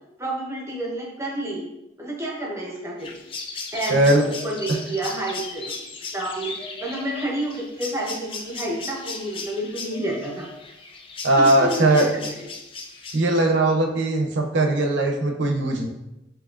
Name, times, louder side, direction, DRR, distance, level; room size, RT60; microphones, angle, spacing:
voice 1, 0.2-1.7 2.0-3.1 3.7-5.8 6.1-6.6 6.8-10.5 11.3-12.5, right 1 dB, 15° right, -2 dB, 0.7 m, -29 dB
sound 1, 3.0-13.4, left 4 dB, 25° left, 0.3 m, -37 dB
voice 2, 3.9-4.2 11.2-12.1 13.1-15.9, right 2 dB, 70° right, 2 dB, 0.6 m, -19 dB
5.7 x 2.8 x 2.5 m, 0.92 s
head